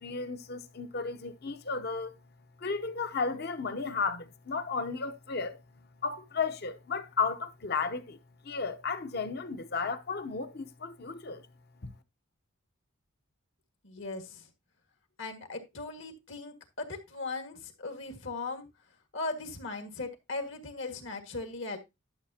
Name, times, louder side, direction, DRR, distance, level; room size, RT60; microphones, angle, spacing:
voice 1, 0.0-2.1 2.6-5.6 6.0-8.2 8.4-11.4 11.8-11.9, left 4 dB, 50° left, 0.8 m, -34 dB
voice 2, 13.8-14.5 15.2-18.7 19.1-21.8, left 3 dB, 65° left, 1.8 m, -38 dB
12.0 x 6.9 x 2.8 m
head